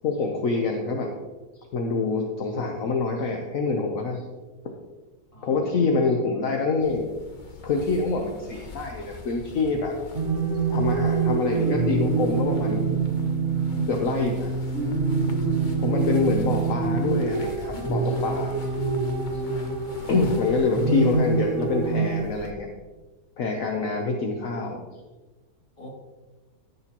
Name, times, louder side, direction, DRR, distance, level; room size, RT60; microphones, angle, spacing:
voice 1, 0.0-1.1 1.7-4.2 5.4-7.0 7.6-9.9 10.7-12.8 13.9-14.5 15.8-18.5 20.1-22.7 23.4-24.8, left 4 dB, 65° left, 2 dB, 1.2 m, -26 dB
voice 2, 5.3-6.1 20.5-20.7 25.8-25.9, equal, 20° left, -4 dB, 2.7 m, -47 dB
sound 1, 6.8-22.5, left 4 dB, 40° left, 0.7 m, -43 dB
sound 2, 10.2-22.2, right 4 dB, 50° right, 1.8 m, -25 dB
13.5 x 6.8 x 3.0 m, 1.2 s
omnidirectional pair, 1.6 m